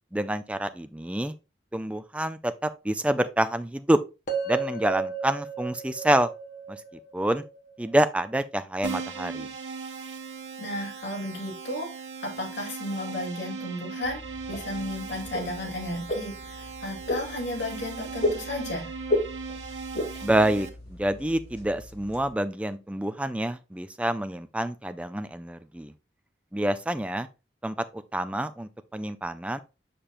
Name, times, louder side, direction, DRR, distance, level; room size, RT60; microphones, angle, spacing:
voice 1, 0.1-1.3 1.7-4.0 4.5-6.3 6.7-6.8 7.1-7.4 7.8-9.5 20.2-25.9 26.5-27.3 27.6-29.6, right 1 dB, 5° right, 0.4 m, -27 dB
sound 1, 4.3-8.4, right 5 dB, 45° left, 1.2 m, -34 dB
Keyboard (musical), 8.8-20.7, right 5 dB, 80° right, 1.2 m, -39 dB
voice 2, 10.6-11.9 12.2-14.2 14.5-18.9, left 1 dB, 75° left, 2.4 m, -34 dB
sound 2, 14.0-22.3, left 1 dB, 60° left, 2.6 m, -34 dB
6.8 x 5.8 x 2.5 m
head